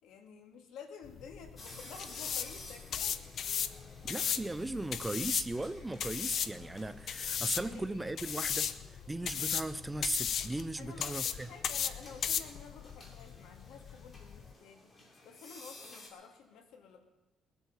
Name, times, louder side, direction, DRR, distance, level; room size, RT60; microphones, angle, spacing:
voice 1, 0.0-3.2 7.6-7.9 10.8-17.1, left 6 dB, 80° left, 2.1 m, -51 dB
sound 1, 1.0-14.5, left 8 dB, 50° left, 0.6 m, -37 dB
sound 2, 1.6-16.1, left 2 dB, 30° left, 2.7 m, -54 dB
voice 2, 4.0-11.5, right 2 dB, 10° right, 0.4 m, -37 dB
21.0 x 8.2 x 6.6 m
cardioid pair, 155°, 0 cm